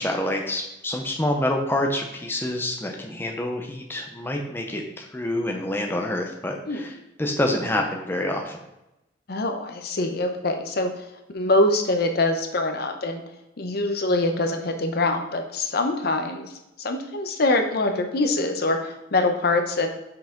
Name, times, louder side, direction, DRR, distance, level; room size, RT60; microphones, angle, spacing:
voice 1, 0.0-6.9 7.2-8.6, left 1 dB, 10° left, 1 dB, 0.6 m, -27 dB
voice 2, 9.3-10.9 11.3-13.2 13.6-16.4 16.8-19.9, left 2 dB, 55° left, 5 dB, 0.7 m, -24 dB
5.7 x 4.8 x 3.7 m, 0.92 s
head